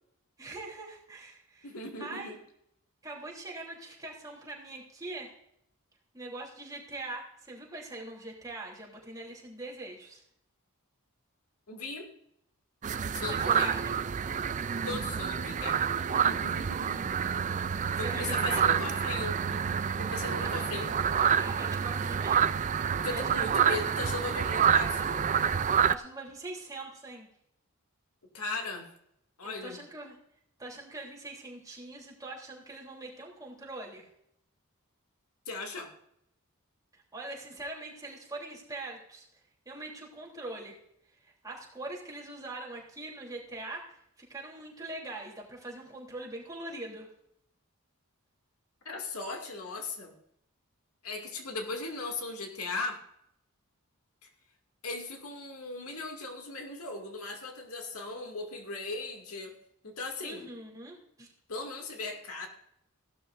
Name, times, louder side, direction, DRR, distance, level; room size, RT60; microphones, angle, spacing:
voice 1, 0.4-1.7 2.0-2.3 3.0-5.3 6.1-10.2 13.3-13.9 17.9-18.7 20.4-20.6 21.3-22.5 23.1-23.8 25.9-27.3 29.4-30.2 30.6-34.1 36.9-39.2 39.6-40.8 41.1-47.1 60.2-61.3, right 2 dB, 15° right, -3 dB, 3.4 m, -42 dB
voice 2, 1.6-2.4 11.7-12.1 13.1-13.8 14.8-15.8 16.1-17.0 18.0-20.9 22.9-25.4 28.3-28.9 29.4-29.8 35.5-35.9 48.8-50.1 51.0-53.0 54.8-59.5 59.8-60.4 61.5-62.5, left 3 dB, 90° left, 3 dB, 2.4 m, -38 dB
sound 1, 12.8-26.0, right 7 dB, 35° right, 0.4 m, -28 dB
16.5 x 12.0 x 2.6 m, 0.74 s
head